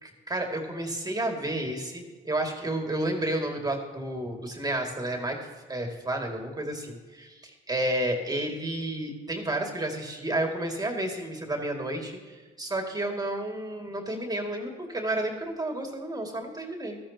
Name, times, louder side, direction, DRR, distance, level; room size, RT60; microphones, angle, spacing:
voice 1, 0.0-5.4 5.7-17.0, right 1 dB, 20° right, 2 dB, 2.4 m, -31 dB
15.5 x 13.5 x 2.9 m, 1.3 s
cardioid pair, 90°, 20 cm